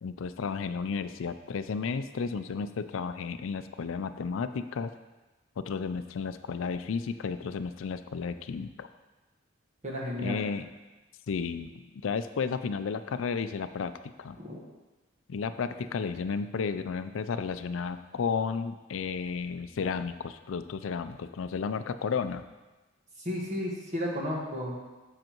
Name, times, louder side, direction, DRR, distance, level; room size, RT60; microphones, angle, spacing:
voice 1, 0.0-4.9 5.6-8.9 10.2-10.7 11.3-11.7 12.0-13.9 14.2-14.4 15.3-22.4, left 5 dB, 85° left, 11 dB, 0.4 m, -33 dB
voice 2, 9.8-10.4 14.4-14.6 23.2-24.8, left 1 dB, 40° right, -3 dB, 1.5 m, -33 dB
7.7 x 6.6 x 3.0 m, 1.2 s
head